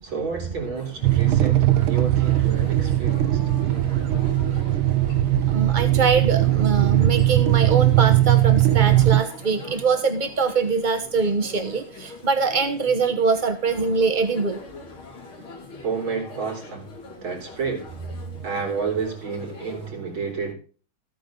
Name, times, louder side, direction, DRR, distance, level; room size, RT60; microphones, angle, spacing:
voice 1, 0.0-3.4 15.8-16.9 17.2-17.9 18.4-20.5, right 5 dB, 70° right, 4.3 m, -30 dB
sound 1, 0.7-19.9, left 3 dB, 85° left, 3.3 m, -43 dB
sound 2, 1.0-9.2, right 14 dB, 85° right, 1.6 m, -19 dB
voice 2, 5.5-14.6, right 4 dB, 50° right, 0.6 m, -23 dB
14.0 x 9.2 x 3.8 m
omnidirectional pair, 2.3 m